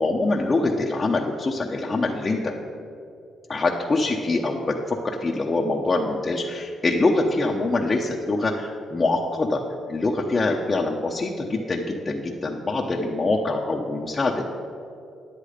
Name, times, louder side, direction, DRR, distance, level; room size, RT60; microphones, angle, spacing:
voice 1, 0.0-2.5 3.5-9.6 9.9-14.4, left 2 dB, 30° left, -1 dB, 0.8 m, -24 dB
9.9 x 8.5 x 5.0 m, 2.5 s
cardioid pair, 90°, 0 cm